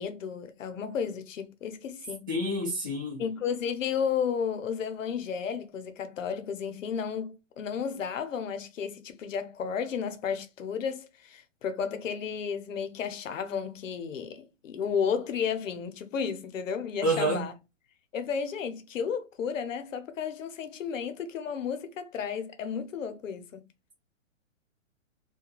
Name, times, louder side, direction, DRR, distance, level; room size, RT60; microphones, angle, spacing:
voice 1, 0.0-2.3 3.2-17.5 18.1-23.6, left 7 dB, 75° left, 0.7 m, -33 dB
voice 2, 2.3-3.2 17.0-17.4, right 1 dB, 15° right, 0.5 m, -28 dB
2.3 x 2.2 x 2.9 m
hypercardioid pair, 170°, 39 cm